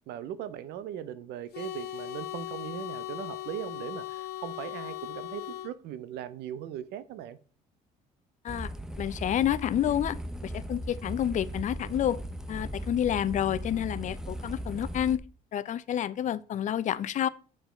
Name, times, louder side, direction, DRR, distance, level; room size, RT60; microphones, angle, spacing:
voice 1, 0.1-7.4, right 10 dB, 85° right, 0.6 m, -39 dB
sound 1, 1.5-5.7, left 13 dB, 75° left, 1.0 m, -38 dB
Flame Loop, 8.5-15.2, right 1 dB, 5° right, 0.6 m, -38 dB
voice 2, 9.0-10.2 10.4-12.2 12.5-15.2 15.5-17.3, left 10 dB, 45° left, 0.5 m, -29 dB
7.3 x 4.4 x 4.4 m
cardioid pair, 110°, 17 cm